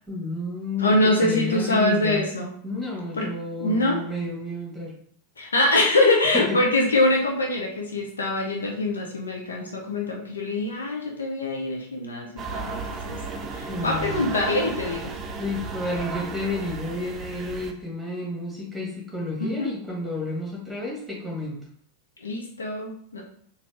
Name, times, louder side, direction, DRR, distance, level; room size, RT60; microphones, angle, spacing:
voice 1, 0.1-2.2 2.6-4.9 6.3-6.6 13.7-14.3 15.4-21.6, left 2 dB, ahead, -3 dB, 1.7 m, -31 dB
voice 2, 0.8-2.5 3.2-3.3 3.6-4.0 5.4-12.8 13.1-13.2 13.5-15.1 19.4-19.7 22.2-23.2, left 2 dB, 70° left, 0 dB, 0.7 m, -24 dB
sound 1, 12.4-17.7, right 4 dB, 25° right, 0.6 m, -34 dB
4.1 x 2.8 x 3.3 m, 0.62 s
figure-of-eight pair, 90°, 0 cm